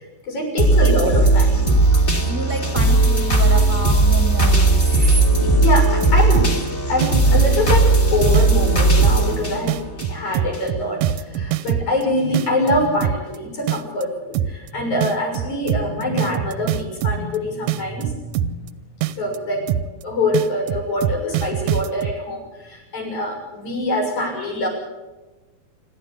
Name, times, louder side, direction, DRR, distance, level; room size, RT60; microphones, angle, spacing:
voice 1, 0.3-1.6 2.6-2.7 4.9-6.5 6.9-9.8 10.0-18.5 19.2-19.7 20.0-24.7, left 1 dB, 60° left, 0 dB, 8.0 m, -24 dB
sound 1, 0.6-10.6 11.1-11.2, right 2 dB, 20° left, 2.9 m, -17 dB
voice 2, 1.6-4.8, right 2 dB, 5° right, 5 dB, 1.4 m, -30 dB
sound 2, 5.8-6.7 7.0-8.0 8.3-8.7 9.0-9.4 9.7-12.0 12.3-13.4 13.7-14.0 14.3-14.7 15.0-17.4 17.7-18.7 19.0-19.4 19.7-20.0 20.3-22.1, right 11 dB, 70° right, 1.8 m, -23 dB
27.0 x 13.0 x 8.3 m, 1.2 s
omnidirectional pair, 3.9 m